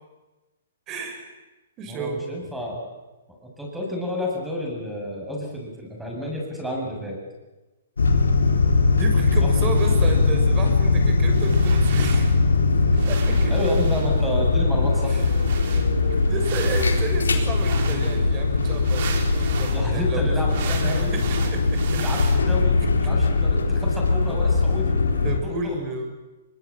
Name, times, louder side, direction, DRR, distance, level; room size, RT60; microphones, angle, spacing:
voice 1, 0.9-1.3 1.8-2.2 9.0-12.4 13.1-13.5 15.0-15.3 15.7-15.8 16.3-20.4 20.8-22.0 25.2-26.1, right 3 dB, 30° right, 5 dB, 6.5 m, -32 dB
voice 2, 1.9-2.8 3.4-7.2 9.4-9.5 13.5-15.3 19.7-21.1 22.0-25.0 25.4-25.7, left 1 dB, 5° right, -1 dB, 7.8 m, -30 dB
sound 1, 8.0-25.4, left 3 dB, 90° left, 3.9 m, -20 dB
sound 2, 9.8-10.3 11.3-12.4 12.9-14.3 14.9-19.8 20.5-22.4, right 7 dB, 55° right, 4.7 m, -37 dB
23.0 x 22.5 x 8.9 m, 1.1 s
hypercardioid pair, 130°, 0 cm